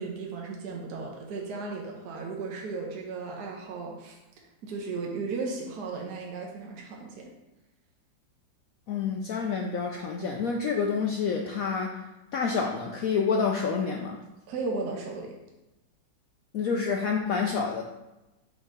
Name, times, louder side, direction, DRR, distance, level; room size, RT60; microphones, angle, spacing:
voice 1, 0.0-4.2 4.6-7.3 14.5-15.3, right 4 dB, 60° right, -1 dB, 1.4 m, -35 dB
voice 2, 8.9-12.0 12.3-14.2 16.5-17.8, left 5 dB, 80° left, 1 dB, 0.7 m, -28 dB
5.2 x 4.3 x 4.9 m, 1.0 s
omnidirectional pair, 2.1 m